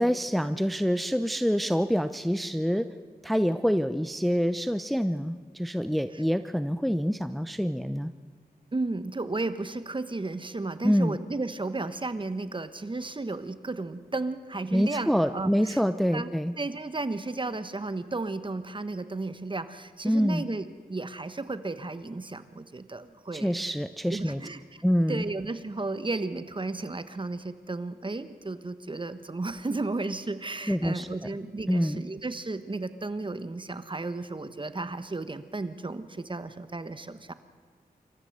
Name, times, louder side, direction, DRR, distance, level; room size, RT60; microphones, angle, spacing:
voice 1, 0.0-2.9 3.2-8.1 10.8-11.2 14.7-16.5 20.0-20.4 23.3-24.4 24.8-25.2 30.7-31.1 31.7-32.0, equal, ahead, 11 dB, 0.7 m, -26 dB
voice 2, 8.7-15.8 16.1-16.3 16.6-23.6 24.1-24.8 25.1-37.3, right 2 dB, 30° right, 12 dB, 1.3 m, -34 dB
27.0 x 14.0 x 8.0 m, 1.5 s
cardioid pair, 70°, 16 cm